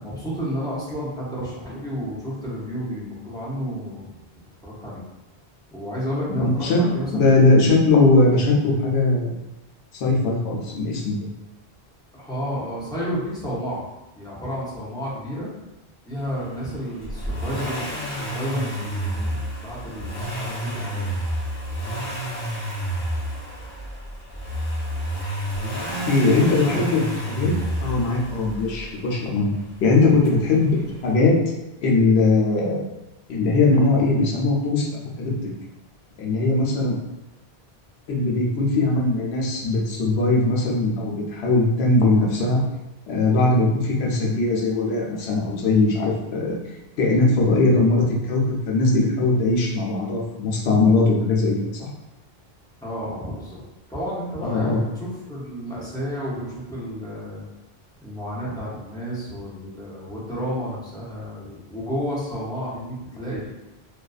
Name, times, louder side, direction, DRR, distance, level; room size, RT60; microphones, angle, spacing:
voice 1, 0.0-4.1 4.6-5.0 5.7-7.6 12.1-13.9 14.2-15.5 16.0-21.2 26.6-26.9 52.8-53.6 53.9-57.4 58.0-63.5, equal, 5° left, -8 dB, 0.6 m, -31 dB
voice 2, 6.3-6.8 7.1-9.3 9.9-11.2 26.1-27.0 27.3-27.5 27.8-29.5 29.8-30.8 31.0-31.4 31.8-32.9 33.3-35.3 36.2-37.0 38.1-42.6 43.1-46.6 47.0-51.9 54.4-54.8, left 3 dB, 85° left, -3 dB, 0.9 m, -20 dB
Accelerating revving vroom, 17.0-28.9 30.2-30.3, right 1 dB, 55° left, 0.9 m, -30 dB
2.4 x 2.3 x 2.4 m, 0.97 s
omnidirectional pair, 1.1 m